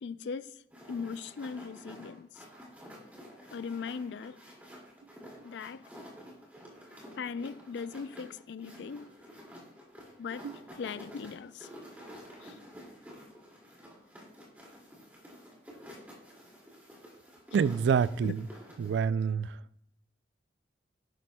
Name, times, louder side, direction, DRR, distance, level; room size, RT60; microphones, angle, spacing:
voice 1, 0.0-0.6 0.9-2.4 3.5-4.4 5.4-5.9 7.2-9.1 10.2-11.7 12.4-12.6 18.2-18.3, left 5 dB, 85° left, 0.4 m, -39 dB
sound 1, 0.7-19.0, equal, 10° right, 2.2 m, -50 dB
voice 2, 17.5-18.4 18.8-19.6, right 6 dB, 85° right, 0.3 m, -27 dB
11.0 x 10.5 x 2.2 m
head